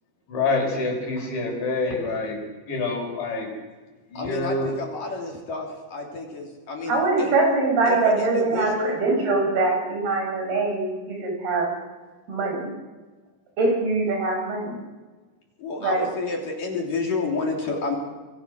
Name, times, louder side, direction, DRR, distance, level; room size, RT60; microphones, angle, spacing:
voice 1, 0.3-2.4 2.7-3.5 4.1-4.7, left 3 dB, 75° left, 2 dB, 6.9 m, -26 dB
voice 2, 4.1-7.3 7.9-9.0 15.6-18.0, left 3 dB, 50° left, 1 dB, 4.5 m, -30 dB
voice 3, 6.9-11.7 12.3-12.7 13.6-14.8 15.8-16.1, right 3 dB, 55° right, 2 dB, 6.9 m, -23 dB
26.0 x 22.0 x 6.4 m, 1.3 s
omnidirectional pair, 5.3 m